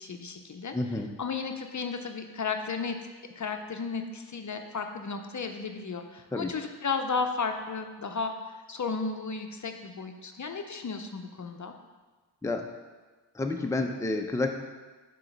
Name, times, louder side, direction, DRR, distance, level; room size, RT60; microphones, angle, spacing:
voice 1, 0.0-0.7 1.2-3.0 3.4-8.3 8.7-11.7, left 4 dB, 40° left, 5 dB, 0.7 m, -34 dB
voice 2, 0.7-1.1 6.3-6.5 12.4-12.7 13.3-14.5, left 2 dB, 5° left, 4 dB, 0.6 m, -29 dB
7.6 x 3.1 x 5.9 m, 1.3 s
supercardioid pair, 40°, 47 cm